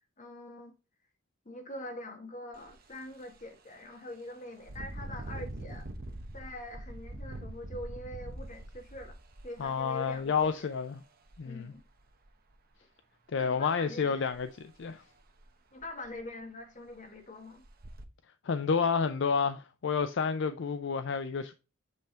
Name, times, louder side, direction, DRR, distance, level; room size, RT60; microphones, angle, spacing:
voice 1, 0.2-0.7 1.4-5.9 6.3-9.2 9.4-10.7 11.4-11.8 13.4-14.2 15.7-17.6, left 1 dB, 40° left, 1.6 m, -44 dB
Engine, 2.5-2.7 3.2-3.4 4.6-10.4 11.3-11.4 11.8-12.5 14.3-14.5 14.8-14.9 15.4-15.5 15.8-16.3 16.9-17.0 17.6-18.0, right 1 dB, 50° right, 0.9 m, -43 dB
voice 2, 9.6-11.0 11.4-11.7 13.3-15.0 18.4-21.5, left 5 dB, 60° left, 0.5 m, -30 dB
8.1 x 3.4 x 4.3 m
head